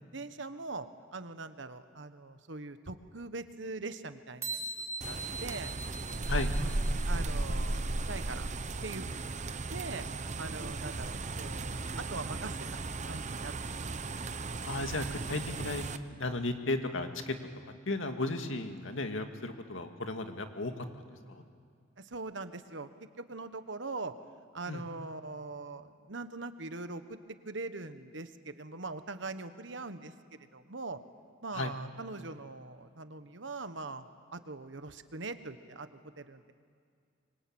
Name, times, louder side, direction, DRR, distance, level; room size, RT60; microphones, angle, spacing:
voice 1, 0.1-5.7 6.6-8.5 8.8-9.2 9.7-12.7 13.0-13.9 22.0-24.1 24.5-31.0 31.4-36.5, right 3 dB, 70° right, 10 dB, 1.3 m, -42 dB
sound 1, 4.4-7.0, right 2 dB, 15° right, 2.8 m, -41 dB
sound 2, 5.0-16.0, right 2 dB, 35° right, 0.8 m, -35 dB
voice 2, 14.6-17.4 17.9-21.4 24.7-24.8 31.5-31.7, left 2 dB, 80° left, 6 dB, 2.1 m, -35 dB
25.5 x 24.5 x 8.9 m, 2.2 s
head